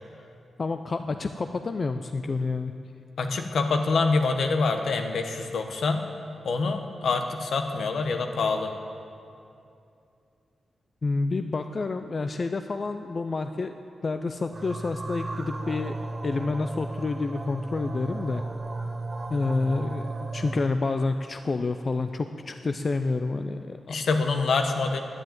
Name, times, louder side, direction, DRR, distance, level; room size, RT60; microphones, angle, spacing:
voice 1, 0.6-2.7 11.0-13.7 14.0-15.9 16.2-18.4 19.3-24.0, left 3 dB, 40° left, 8 dB, 0.4 m, -29 dB
voice 2, 3.2-6.0 6.4-8.7 23.9-25.0, left 4 dB, 75° left, 6 dB, 1.1 m, -25 dB
sound 1, 14.5-20.7, right 2 dB, 35° right, 1.0 m, -35 dB
10.5 x 9.9 x 9.1 m, 2.6 s
cardioid pair, 90°, 0 cm